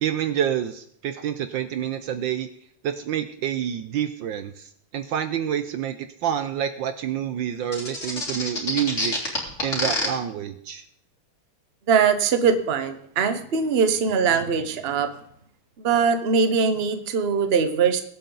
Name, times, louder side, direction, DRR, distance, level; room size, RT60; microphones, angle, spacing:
voice 1, 0.0-2.5 2.8-10.8, right 9 dB, 70° right, 11 dB, 1.3 m, -28 dB
sound 1, 7.7-10.1, left 2 dB, 35° left, 3.5 m, -26 dB
voice 2, 11.9-15.1 15.8-18.0, right 6 dB, 40° right, 9 dB, 1.0 m, -21 dB
22.0 x 8.4 x 4.0 m, 0.68 s
omnidirectional pair, 2.4 m